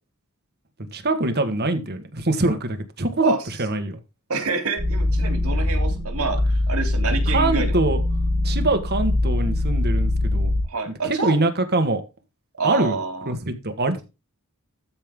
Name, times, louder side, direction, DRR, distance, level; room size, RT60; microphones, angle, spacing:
voice 1, 0.9-3.3 3.6-4.0 7.3-8.0 8.4-10.5 10.9-12.0 12.6-13.0 13.3-14.0, right 2 dB, 50° right, 8 dB, 1.8 m, -23 dB
voice 2, 4.3-6.4 6.7-7.7 10.7-11.3 12.6-13.3, right 4 dB, 85° right, 5 dB, 3.4 m, -27 dB
sound 1, 4.8-10.6, left 1 dB, 30° right, 4.4 m, -22 dB
13.0 x 5.5 x 3.8 m, 0.27 s
head